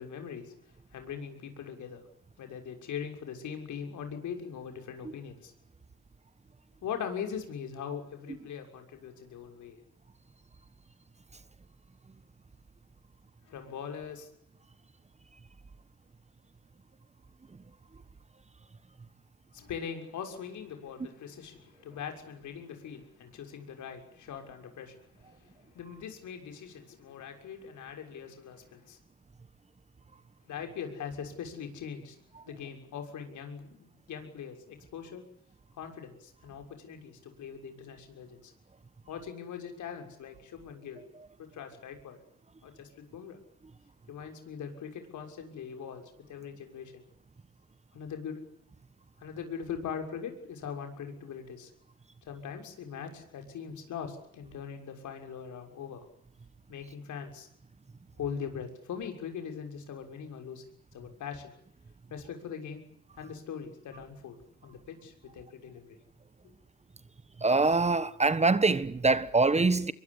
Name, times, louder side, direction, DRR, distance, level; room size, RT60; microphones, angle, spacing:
voice 1, 0.0-2.0 2.4-5.5 6.8-9.8 13.5-14.3 19.5-29.0 30.5-35.3 35.7-38.5 39.1-41.0 41.4-42.2 42.6-43.4 44.1-47.1 47.9-48.4 49.2-51.7 52.3-56.0 56.7-57.5 58.2-60.6 60.9-61.5 62.1-62.8 63.2-64.4 64.6-66.0, left 7 dB, 75° left, 6.6 m, -41 dB
voice 2, 67.4-69.9, right 3 dB, 20° right, 1.3 m, -24 dB
24.5 x 23.0 x 10.0 m
cardioid pair, 90°, 30 cm